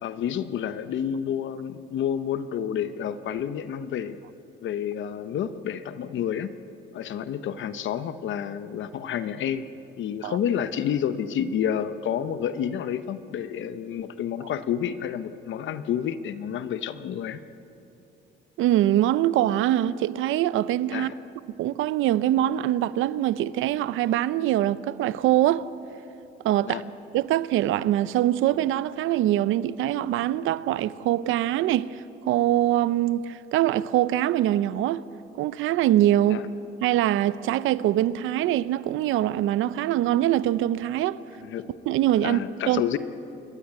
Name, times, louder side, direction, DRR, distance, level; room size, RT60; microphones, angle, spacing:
voice 1, 0.0-4.2 4.6-6.5 6.9-9.7 10.0-17.4 20.9-21.1 26.6-26.8 36.3-36.5 41.4-41.7 42.2-43.0, left 9 dB, 75° left, 0.9 m, -29 dB
voice 2, 18.6-21.1 21.6-25.7 26.4-26.8 27.1-35.0 35.4-36.4 36.8-41.2 41.9-42.8, right 13 dB, 90° right, 0.6 m, -23 dB
28.5 x 13.0 x 9.5 m
cardioid pair, 90°, 20 cm